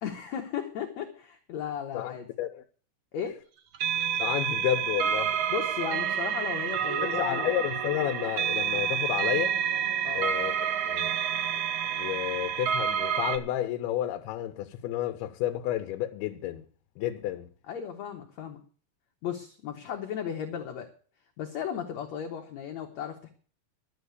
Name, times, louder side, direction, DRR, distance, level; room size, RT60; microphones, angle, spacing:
voice 1, 0.0-2.3 3.1-3.4 5.5-7.5 10.0-10.3 17.7-18.6 19.2-20.9 21.4-23.3, left 8 dB, 65° left, 1.9 m, -35 dB
voice 2, 1.9-2.6 4.2-5.3 6.8-9.6 10.2-10.5 10.9-11.1 11.9-16.7 17.0-17.5, left 12 dB, 85° left, 2.7 m, -31 dB
sound 1, 3.7-13.4, right 8 dB, 85° right, 1.4 m, -29 dB
12.5 x 7.5 x 8.1 m
omnidirectional pair, 4.4 m